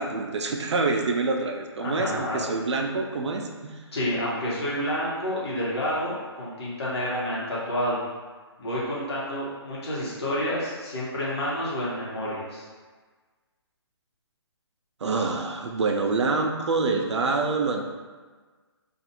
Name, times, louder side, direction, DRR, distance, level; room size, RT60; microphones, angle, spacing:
voice 1, 0.0-3.8 15.0-17.8, right 3 dB, 90° right, 3 dB, 0.5 m, -26 dB
voice 2, 1.8-2.4 3.9-8.0 8.6-12.6, equal, 70° left, -7 dB, 1.2 m, -29 dB
2.5 x 2.4 x 2.8 m, 1.4 s
hypercardioid pair, 170°, 14 cm